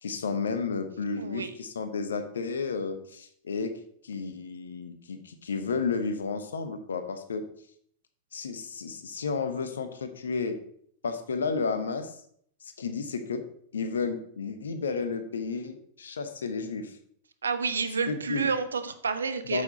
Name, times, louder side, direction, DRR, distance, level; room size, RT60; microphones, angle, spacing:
voice 1, 0.0-3.7 4.0-7.4 8.3-10.6 11.0-12.2 12.6-13.4 13.7-17.0 18.1-18.5 19.5-19.6, left 5 dB, 70° left, 9 dB, 1.0 m, -32 dB
voice 2, 1.2-1.5 17.4-19.6, right 5 dB, 70° right, 11 dB, 0.6 m, -29 dB
8.4 x 7.0 x 4.0 m, 0.65 s
figure-of-eight pair, 90°, 0 cm